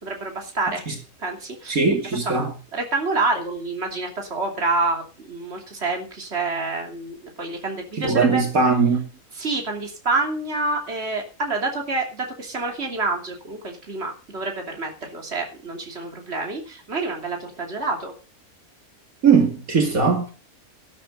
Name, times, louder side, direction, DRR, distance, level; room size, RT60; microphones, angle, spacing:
voice 1, 0.0-0.8 1.2-1.8 2.2-2.5 2.7-8.4 9.3-18.1, right 3 dB, 45° right, 3.2 m, -27 dB
voice 2, 1.7-2.5 8.0-9.0 19.2-20.3, right 5 dB, 70° right, 3.0 m, -19 dB
13.0 x 12.5 x 5.3 m
omnidirectional pair, 1.5 m